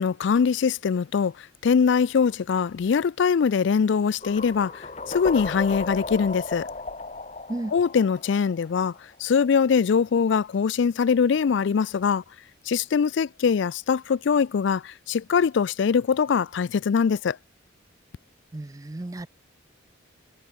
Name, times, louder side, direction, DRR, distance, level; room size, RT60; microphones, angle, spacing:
voice 1, 0.0-6.7 7.7-8.9 9.2-12.2 12.7-17.4, left 6 dB, 65° left, 0.4 m, -22 dB
sound 1, 4.2-9.1, left 2 dB, 35° left, 1.8 m, -35 dB
voice 2, 18.5-19.3, right 2 dB, 15° right, 0.4 m, -33 dB
head